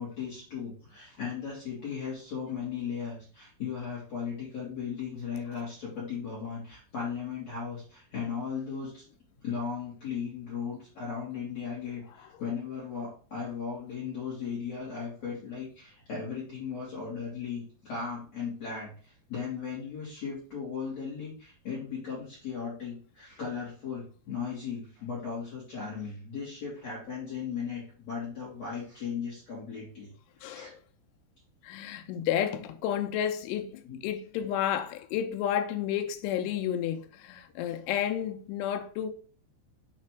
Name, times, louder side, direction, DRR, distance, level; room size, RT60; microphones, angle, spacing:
voice 1, 0.0-9.0 9.4-30.1 30.4-30.7 33.8-34.0, left 6 dB, 45° left, 2.4 m, -37 dB
voice 2, 31.6-39.1, left 10 dB, 90° left, 3.1 m, -31 dB
6.9 x 3.3 x 4.5 m
omnidirectional pair, 5.4 m